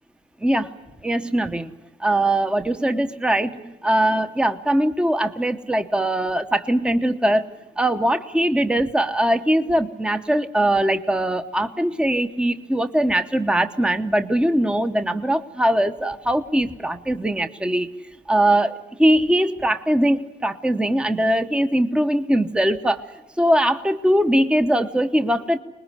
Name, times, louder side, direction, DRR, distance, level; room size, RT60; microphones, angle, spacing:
voice 1, 0.4-0.7 1.0-1.7 2.0-7.4 7.8-17.9 18.3-23.0 23.4-25.6, right 1 dB, 5° right, 9 dB, 1.0 m, -21 dB
24.5 x 20.5 x 9.8 m, 1.0 s
cardioid pair, 90°, 20 cm